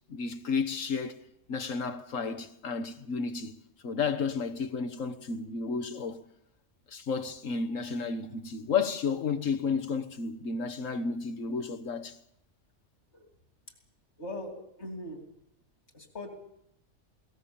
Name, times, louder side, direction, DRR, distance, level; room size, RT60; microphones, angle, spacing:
voice 1, 0.1-1.2 1.5-3.6 3.8-6.2 6.9-12.2, left 5 dB, 85° left, 1.7 m, -32 dB
voice 2, 14.2-15.2 15.9-16.3, left 1 dB, 60° left, 3.6 m, -40 dB
21.5 x 18.5 x 7.1 m
omnidirectional pair, 1.3 m